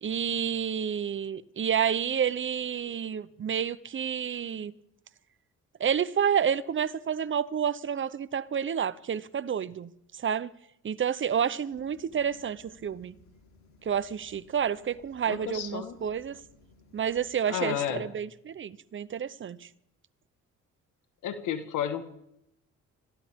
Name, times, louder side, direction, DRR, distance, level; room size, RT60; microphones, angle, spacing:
voice 1, 0.0-4.7 5.8-10.5 10.8-13.1 13.8-16.4 16.9-19.7, right 8 dB, 40° right, 0.7 m, -29 dB
sound 1, 11.7-17.3, left 3 dB, 65° left, 3.4 m, -59 dB
voice 2, 15.3-16.0 17.5-18.0 21.2-22.0, left 9 dB, 80° left, 1.5 m, -32 dB
25.5 x 15.0 x 3.6 m
cardioid pair, 90°, 30 cm